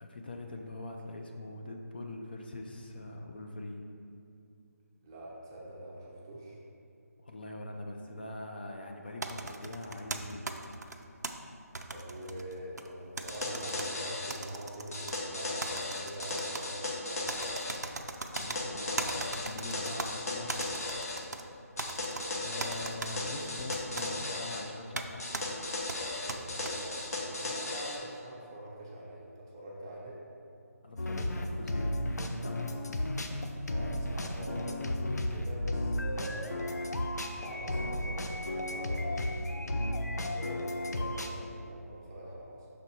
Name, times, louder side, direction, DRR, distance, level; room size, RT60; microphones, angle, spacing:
voice 1, 0.0-3.8 7.2-10.4 18.3-20.7 22.3-25.2 30.8-32.7, left 2 dB, 35° left, 2 dB, 0.4 m, -42 dB
voice 2, 5.0-6.6 11.9-17.6 26.1-30.2 33.7-36.9 37.4-42.7, right 1 dB, 15° right, -5 dB, 0.5 m, -45 dB
sound 1, 9.2-11.3 11.7-12.9 13.2-13.9 14.3-15.2 15.6-16.6 17.3-18.6 19.0-20.1 20.5-21.4 21.8-22.2 22.6-23.1 23.7-24.1 24.9-25.1 25.3-25.4 25.9-26.7, right 3 dB, 90° right, 0.5 m, -38 dB
sound 2, 13.3-14.4 14.9-17.8 18.3-21.2 21.8-24.6 25.2-28.0, left 2 dB, 65° left, 1.3 m, -36 dB
sound 3, 31.0-41.3, left 1 dB, 80° left, 0.6 m, -34 dB
6.0 x 4.2 x 4.6 m, 2.6 s
figure-of-eight pair, 170°, 9 cm